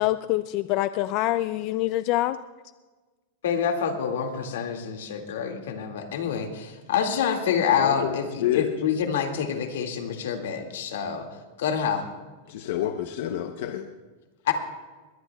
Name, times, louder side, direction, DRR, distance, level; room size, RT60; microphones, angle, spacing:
voice 1, 0.0-2.4, left 16 dB, 40° left, 13 dB, 0.3 m, -25 dB
voice 2, 3.4-11.3 11.6-12.1 14.5-14.6, left 7 dB, 85° left, 4 dB, 2.1 m, -27 dB
voice 3, 7.8-8.1 8.4-8.7 12.5-13.9, left 11 dB, 60° left, 6 dB, 0.8 m, -28 dB
21.5 x 19.0 x 2.3 m, 1.3 s
supercardioid pair, 165°, 0 cm